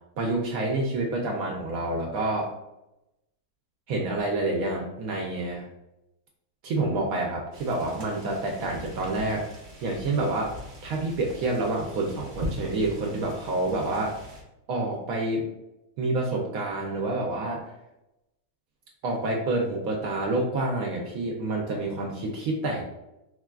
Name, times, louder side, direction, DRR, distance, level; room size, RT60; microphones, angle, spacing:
voice 1, 0.2-2.5 3.9-5.7 6.6-9.5 9.8-10.6 10.8-14.2 14.7-15.5 16.0-17.7 19.0-22.8, right 2 dB, 80° right, -1 dB, 1.0 m, -28 dB
sound 1, 7.5-14.4, equal, 55° right, 1.0 m, -41 dB
4.4 x 2.3 x 2.3 m, 0.91 s
omnidirectional pair, 1.5 m